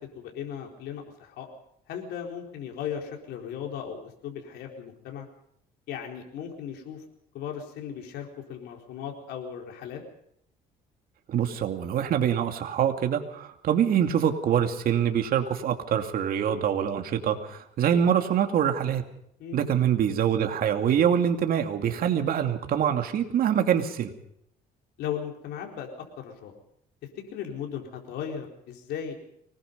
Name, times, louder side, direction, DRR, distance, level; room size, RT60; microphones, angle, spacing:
voice 1, 0.0-1.5 1.9-5.3 5.9-7.0 7.3-10.0 19.4-19.7 25.0-25.9 26.2-26.5 27.3-29.1, left 8 dB, 80° left, 1 dB, 4.4 m, -37 dB
voice 2, 11.3-19.0 19.5-24.1, right 9 dB, 60° right, 5 dB, 2.6 m, -25 dB
24.5 x 20.0 x 5.4 m, 0.72 s
cardioid pair, 110°, 17 cm